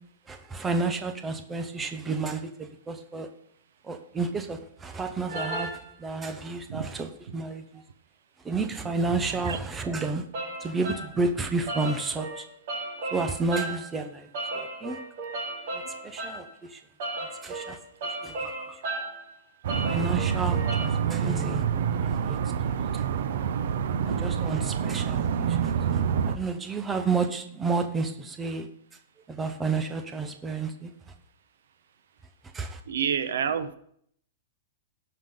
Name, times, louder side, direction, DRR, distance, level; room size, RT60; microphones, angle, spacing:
voice 1, 0.3-3.3 3.8-5.7 6.0-7.8 8.4-10.2 10.6-12.5 13.1-15.0 15.7-16.8 17.2-18.8 19.8-21.6 22.0-23.0 24.0-28.7 29.3-31.1 32.5-32.8, right 4 dB, 10° right, 6 dB, 0.8 m, -31 dB
sound 1, 5.3-5.8 10.3-11.1 11.7-13.9 14.3-16.4 17.0-19.2 19.7-20.9, right 2 dB, 45° right, 3.5 m, -34 dB
sound 2, 19.6-26.4, right 8 dB, 60° right, 0.8 m, -27 dB
voice 2, 24.0-24.3 32.9-33.7, right 7 dB, 85° right, 12 dB, 1.0 m, -28 dB
17.5 x 5.9 x 3.8 m, 0.64 s
supercardioid pair, 170°, 0 cm